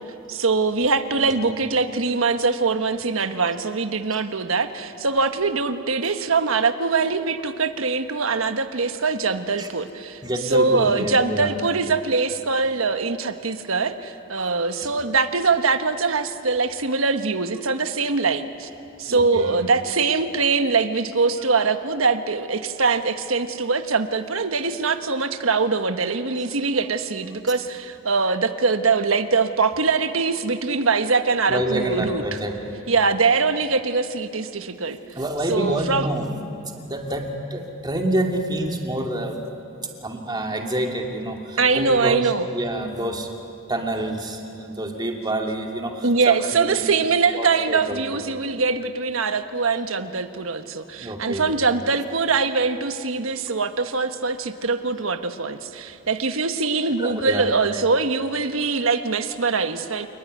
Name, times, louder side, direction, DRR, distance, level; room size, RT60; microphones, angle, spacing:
voice 1, 0.3-18.7 19.0-32.2 32.9-35.0 35.5-36.1 41.6-42.4 46.0-60.1, right 4 dB, 80° right, 8 dB, 1.3 m, -23 dB
voice 2, 1.2-1.6 9.6-9.7 10.2-11.6 14.4-14.9 19.1-19.5 31.5-32.8 35.1-36.4 36.7-39.4 40.0-43.3 43.7-46.8 47.3-48.2 51.0-51.5 57.0-57.5, right 1 dB, 20° right, 2 dB, 2.7 m, -28 dB
28.0 x 20.0 x 9.5 m, 2.6 s
head